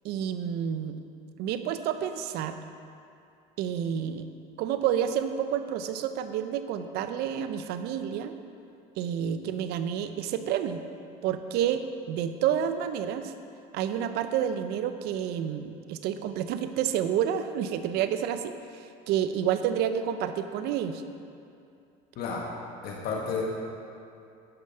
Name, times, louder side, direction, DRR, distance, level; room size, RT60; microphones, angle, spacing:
voice 1, 0.0-1.0 1.4-2.5 3.6-4.3 4.6-8.4 9.0-10.8 11.2-13.3 13.7-18.5 19.1-21.0, right 9 dB, 65° right, 9 dB, 0.6 m, -29 dB
voice 2, 22.2-22.5 22.8-23.4, left 5 dB, 60° left, -1 dB, 1.4 m, -31 dB
9.7 x 5.3 x 5.6 m, 2.6 s
supercardioid pair, 105°, 18 cm